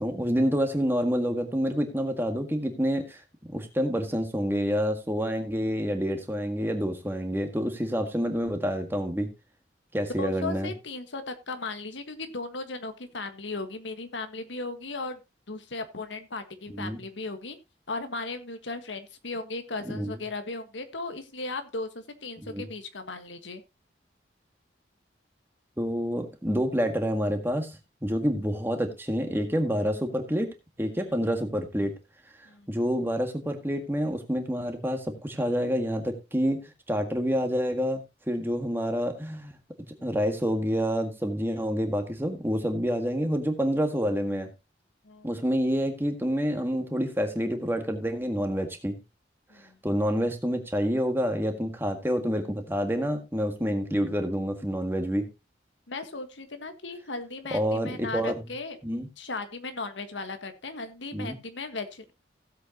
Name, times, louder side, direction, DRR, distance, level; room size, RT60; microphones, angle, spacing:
voice 1, 0.0-3.2 3.5-9.3 9.9-10.7 16.7-17.0 19.8-20.2 22.4-22.7 25.8-27.7 28.0-32.0 32.7-36.6 36.9-39.6 40.0-44.5 45.2-49.0 49.8-55.3 57.5-58.3 58.8-59.1 61.1-61.4, equal, 10° right, 5 dB, 1.7 m, -28 dB
voice 2, 10.2-15.2 15.5-17.6 17.9-23.6 32.4-32.7 45.0-45.4 49.5-49.8 55.9-58.8 59.2-62.1, left 3 dB, 90° left, 8 dB, 1.6 m, -36 dB
16.5 x 7.9 x 2.9 m, 0.24 s
head